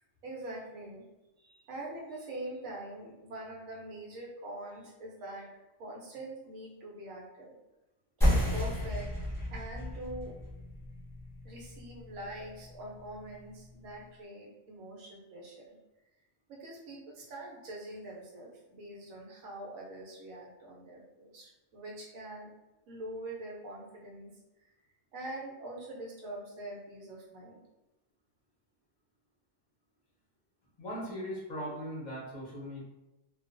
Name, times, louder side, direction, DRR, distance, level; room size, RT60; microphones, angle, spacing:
voice 1, 0.2-1.0 1.4-5.5 5.8-7.6 8.2-9.1 9.5-10.3 11.4-15.8 16.5-22.5 22.9-24.3 24.6-24.7 25.1-27.6, right 1 dB, 90° right, -2 dB, 1.1 m, -44 dB
sound 1, 8.2-13.3, equal, ahead, 0.8 m, -32 dB
voice 2, 30.8-32.8, equal, 45° left, -6 dB, 0.7 m, -39 dB
2.3 x 2.3 x 2.5 m, 1.0 s
omnidirectional pair, 1.3 m